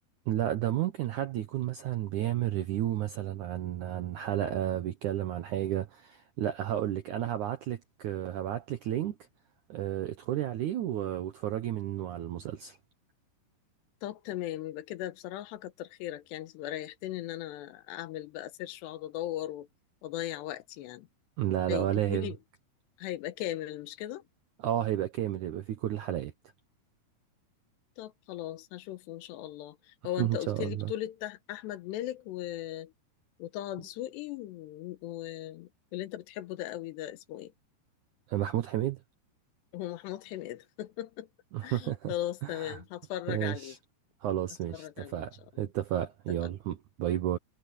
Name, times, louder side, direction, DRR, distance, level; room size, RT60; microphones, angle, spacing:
voice 1, 0.3-9.2 9.7-12.8 21.4-22.3 24.6-26.3 30.2-30.9 38.3-39.0 41.5-42.1 42.4-42.8 43.3-43.8 44.2-47.4, right 12 dB, 75° right, 1.8 m, -32 dB
voice 2, 14.0-19.7 20.0-21.1 21.7-22.4 23.0-24.2 28.0-32.9 33.4-37.5 39.7-41.3 41.6-43.8 44.7-45.3 45.5-45.7 46.4-46.5, left 13 dB, 85° left, 3.2 m, -38 dB
omnidirectional pair, 4.9 m